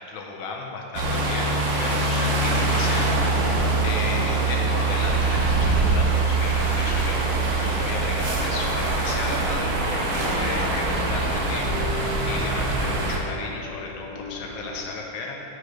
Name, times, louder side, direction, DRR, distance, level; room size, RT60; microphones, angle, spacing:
voice 1, 0.1-1.5 1.8-15.6, left 3 dB, 85° left, 0 dB, 1.5 m, -34 dB
sound 1, 0.9-13.2, right 3 dB, 70° right, 0.7 m, -23 dB
sound 2, 2.3-14.9, left 2 dB, 55° left, 1.2 m, -39 dB
7.7 x 4.8 x 3.1 m, 2.8 s
omnidirectional pair, 2.2 m